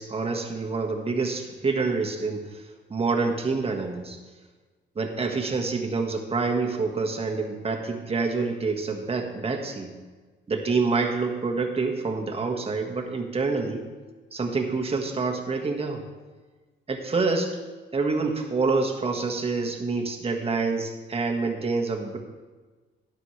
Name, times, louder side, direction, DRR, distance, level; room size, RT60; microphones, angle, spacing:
voice 1, 0.0-2.6 2.9-4.2 4.9-9.9 10.5-13.8 14.3-16.0 16.9-17.6 17.9-22.2, right 4 dB, 30° right, 2 dB, 1.6 m, -27 dB
12.5 x 11.0 x 3.3 m, 1.3 s
cardioid pair, 90°, 20 cm